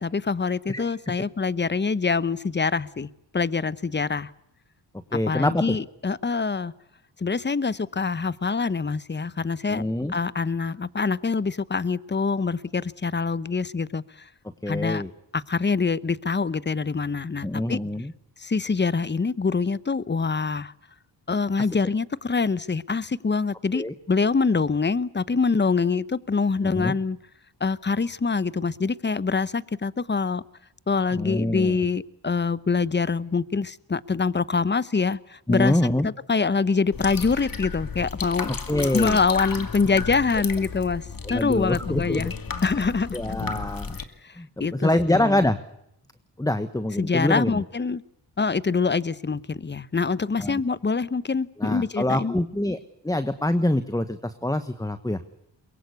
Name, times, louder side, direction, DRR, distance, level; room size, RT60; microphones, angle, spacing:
voice 1, 0.0-4.3 5.3-6.7 7.2-9.8 10.1-14.0 14.7-15.0 15.3-17.8 18.4-20.7 21.3-27.2 27.6-30.4 30.9-35.8 36.0-38.5 38.9-41.0 41.3-42.3 42.6-43.4 44.2-44.3 44.6-45.5 47.0-48.0 48.4-52.3, left 4 dB, 25° left, 19 dB, 0.9 m, -25 dB
voice 2, 5.1-5.8 9.7-10.2 14.6-15.1 17.4-18.1 23.7-23.9 26.6-26.9 31.1-31.8 35.5-36.1 38.5-39.2 41.2-42.2 42.7-42.9 43.1-44.0 44.4-45.6 46.4-47.6 50.4-50.6 51.6-52.8 53.0-55.2, left 1 dB, 10° left, 12 dB, 1.3 m, -25 dB
sound 1, 36.9-44.0, left 5 dB, 45° left, 2.4 m, -33 dB
22.5 x 22.5 x 8.3 m, 0.78 s
supercardioid pair, 45°, 46 cm